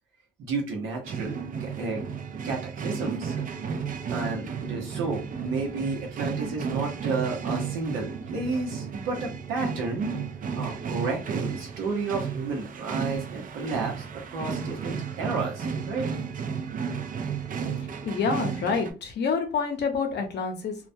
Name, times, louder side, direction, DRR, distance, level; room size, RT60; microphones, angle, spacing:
voice 1, 0.4-2.0 2.4-3.5 4.1-10.2 10.5-14.0 14.3-16.1, right 3 dB, 90° right, -1 dB, 0.8 m, -31 dB
sound 1, 1.0-18.9, right 6 dB, 45° right, 0.4 m, -33 dB
voice 2, 17.7-20.8, left 5 dB, 60° left, 4 dB, 0.7 m, -28 dB
2.2 x 2.1 x 2.6 m, 0.32 s
cardioid pair, 90°, 20 cm